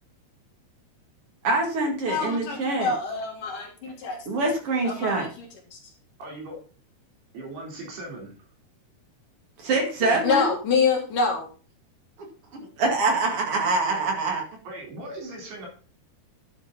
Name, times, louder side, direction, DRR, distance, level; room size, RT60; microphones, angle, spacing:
voice 1, 1.4-2.9 4.3-5.3 9.6-10.5 12.8-14.4, right 3 dB, 45° right, 2 dB, 2.4 m, -24 dB
voice 2, 2.0-4.2 4.8-5.5 5.7-5.8 10.0-11.5, left 5 dB, 60° left, 1 dB, 3.0 m, -26 dB
voice 3, 6.2-6.6 7.3-8.3 14.7-15.7, right 2 dB, 75° right, -1 dB, 5.9 m, -38 dB
11.0 x 6.9 x 4.1 m, 0.38 s
omnidirectional pair, 4.6 m